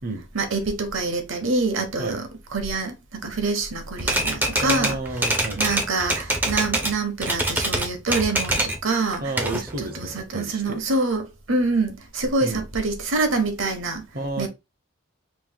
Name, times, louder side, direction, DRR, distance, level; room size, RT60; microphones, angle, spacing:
voice 1, 0.3-5.0 5.6-9.2 9.5-14.0 14.4-14.5, right 3 dB, 75° right, 1.0 m, -26 dB
Typewriter, 4.0-7.0 7.2-8.8 9.1-10.2, right 1 dB, 10° right, 0.5 m, -25 dB
voice 2, 4.5-5.8 9.2-10.8 12.4-12.7 14.1-14.5, right 2 dB, 45° right, 0.8 m, -31 dB
5.4 x 3.1 x 2.2 m
head